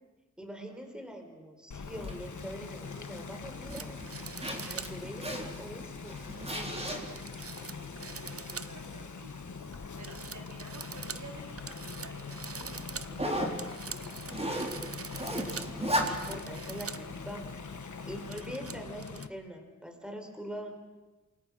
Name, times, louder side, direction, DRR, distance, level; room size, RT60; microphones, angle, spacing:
voice 1, 0.4-4.0 4.6-6.2 15.8-17.5 18.1-20.7, equal, 5° right, 4 dB, 4.5 m, -43 dB
sound 1, 1.7-19.3, left 5 dB, 90° left, 1.4 m, -43 dB
Zipper (clothing), 1.8-18.3, right 1 dB, 20° right, 3.9 m, -39 dB
sound 2, 3.7-5.0 5.4-5.5 6.7-9.0 9.3-9.8 10.0-17.1 17.5-17.6 18.0-19.3, right 5 dB, 55° right, 0.9 m, -44 dB
voice 2, 6.2-7.2 7.7-9.7 10.0-14.1, right 2 dB, 70° right, 1 dB, 4.1 m, -51 dB
28.0 x 23.5 x 6.5 m, 1.1 s
wide cardioid pair, 85°, 29 cm